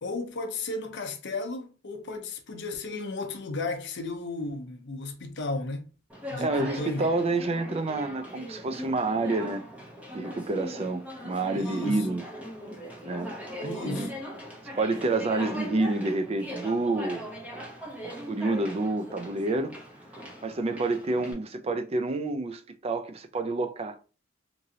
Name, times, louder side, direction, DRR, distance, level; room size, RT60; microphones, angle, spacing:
voice 1, 0.0-5.9 6.3-7.1 11.5-12.1 13.6-14.2, left 3 dB, 60° left, 0.6 m, -34 dB
Conversation, 6.1-21.3, equal, 10° right, 0.7 m, -40 dB
voice 2, 6.4-9.6 10.1-12.2 13.0-13.3 13.6-14.1 14.8-17.3 18.3-19.7 20.4-24.0, right 2 dB, 30° right, 0.4 m, -28 dB
3.0 x 2.6 x 2.7 m
head